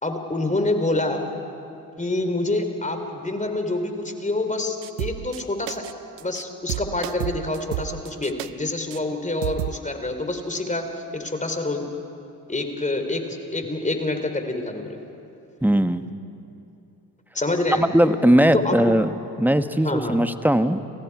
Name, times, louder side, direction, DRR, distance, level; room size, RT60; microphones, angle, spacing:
voice 1, 0.0-1.3 2.0-5.8 6.2-10.9 11.1-11.8 12.5-15.0 17.3-17.8 18.5-18.9 19.8-20.2, left 2 dB, 15° left, 6 dB, 3.7 m, -26 dB
sound 1, 4.8-5.4 5.7-5.9 6.2-6.4 6.7-8.5 8.9-9.0 9.4-9.8, right 16 dB, 65° right, 0.7 m, -31 dB
voice 2, 15.6-16.0 17.8-19.1 19.4-20.8, right 1 dB, 5° right, 10 dB, 1.3 m, -19 dB
30.0 x 25.5 x 4.9 m, 2.8 s
figure-of-eight pair, 45°, 46 cm